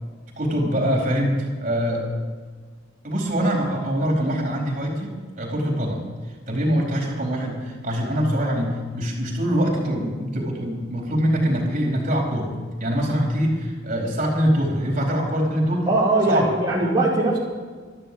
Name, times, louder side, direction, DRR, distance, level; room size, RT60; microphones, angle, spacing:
voice 1, 0.4-2.1 3.0-6.0 6.5-12.5 12.8-15.9 16.3-16.5, equal, 40° right, -1 dB, 4.4 m, -23 dB
voice 2, 15.9-17.4, right 2 dB, 20° right, -8 dB, 2.8 m, -20 dB
13.5 x 12.0 x 7.1 m, 1.5 s
head